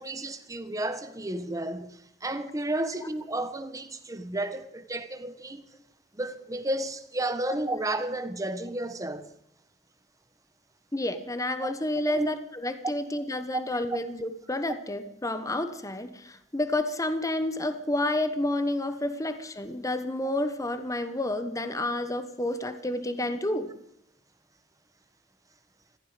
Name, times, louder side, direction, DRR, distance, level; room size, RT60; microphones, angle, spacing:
voice 1, 0.0-5.6 6.1-9.3 11.6-11.7 12.1-12.3 13.9-14.0, right 1 dB, 20° right, 1.3 m, -32 dB
voice 2, 10.9-23.7, left 1 dB, 20° left, 1.2 m, -30 dB
16.0 x 15.0 x 5.2 m
head